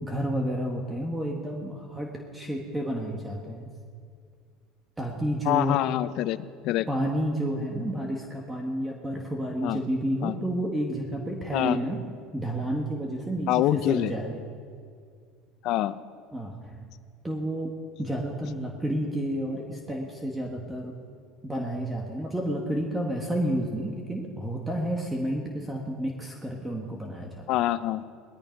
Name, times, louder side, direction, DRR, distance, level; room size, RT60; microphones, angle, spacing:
voice 1, 0.0-3.7 5.0-5.8 6.9-12.0 12.3-14.4 16.3-16.9 17.2-17.7 18.0-20.9 21.4-27.6, right 1 dB, 10° right, 1 dB, 1.7 m, -30 dB
voice 2, 5.5-6.4 6.6-6.9 9.6-9.8 10.2-10.3 11.5-11.8 13.5-14.1 15.6-16.0 27.5-28.1, left 14 dB, 60° left, 15 dB, 0.6 m, -25 dB
19.0 x 12.5 x 5.3 m, 2.1 s
supercardioid pair, 100°, 0 cm